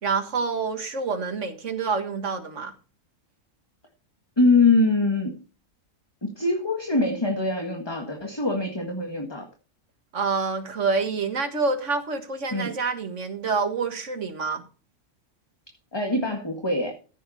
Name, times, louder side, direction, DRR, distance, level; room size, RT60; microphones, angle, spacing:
voice 1, 0.0-2.7 10.1-14.6, right 4 dB, 60° right, 2.0 m, -27 dB
voice 2, 4.4-5.4 6.2-9.5 12.5-12.7 15.9-17.0, left 3 dB, 20° left, 1.7 m, -23 dB
14.0 x 7.3 x 4.2 m
omnidirectional pair, 1.4 m